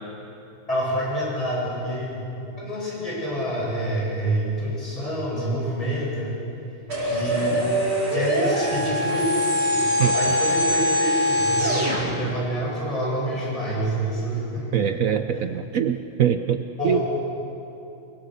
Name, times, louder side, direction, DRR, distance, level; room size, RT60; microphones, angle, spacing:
voice 1, 0.7-2.2 2.6-6.4 7.1-7.6 8.1-14.7 15.1-15.4 16.8-17.0, right 1 dB, 15° left, -5 dB, 7.4 m, -27 dB
sound 1, 6.9-12.0, equal, 70° right, 6.3 m, -23 dB
voice 2, 14.7-17.0, right 9 dB, 85° right, 9 dB, 0.7 m, -23 dB
28.0 x 21.5 x 6.6 m, 2.9 s
omnidirectional pair, 2.3 m